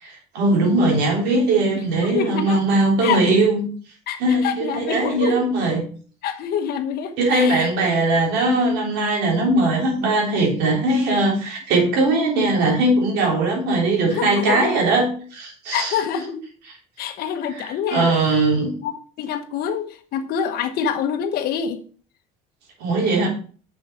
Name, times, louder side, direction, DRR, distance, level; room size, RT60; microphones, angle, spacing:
voice 1, 0.0-3.7 4.2-5.9 7.2-16.0 17.5-18.7 22.8-23.3, right 2 dB, 70° right, 0 dB, 3.5 m, -20 dB
voice 2, 2.0-2.6 3.0-3.2 4.1-5.4 6.2-7.7 14.1-14.8 15.7-16.4 17.0-18.1 18.8-21.8, left 8 dB, 65° left, 8 dB, 1.2 m, -26 dB
6.4 x 6.2 x 4.7 m, 0.42 s
supercardioid pair, 105°, 17 cm